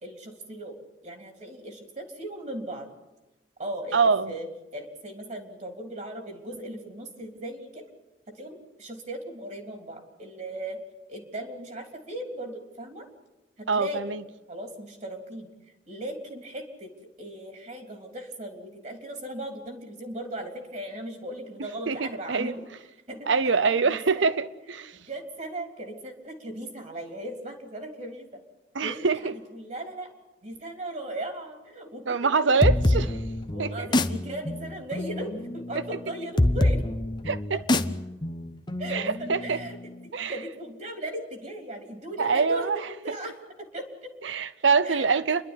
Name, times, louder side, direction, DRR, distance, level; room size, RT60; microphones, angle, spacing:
voice 1, 0.0-0.8 1.0-2.9 3.6-7.9 8.3-10.8 11.1-13.1 13.6-14.0 14.5-15.5 15.9-22.6 23.1-24.5 25.0-28.4 28.8-30.1 30.4-33.0 33.5-36.8 37.5-37.6 38.8-39.8 40.2-44.1 44.8-45.2, right 1 dB, 40° right, 3.3 m, -38 dB
voice 2, 3.9-4.3 13.7-14.2 21.9-22.5 23.3-25.0 28.7-29.2 32.1-33.1 33.6-33.9 37.3-37.4 38.9-39.0 39.3-39.6 40.1-40.3 42.2-42.8 44.2-45.4, right 5 dB, 90° right, 0.8 m, -24 dB
sound 1, 32.6-40.0, left 1 dB, 25° left, 0.7 m, -26 dB
29.0 x 12.0 x 9.9 m
head